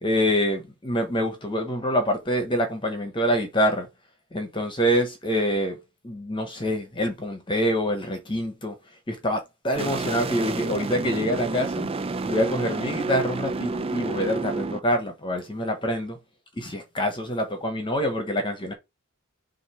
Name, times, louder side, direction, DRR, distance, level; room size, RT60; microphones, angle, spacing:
voice 1, 0.0-3.9 4.3-5.8 6.0-8.7 9.1-11.9 12.2-16.2 16.6-18.7, equal, 20° left, 1.1 m, -26 dB
sound 1, 9.8-14.8, right 3 dB, 25° right, 0.4 m, -29 dB
7.1 x 2.7 x 4.8 m
head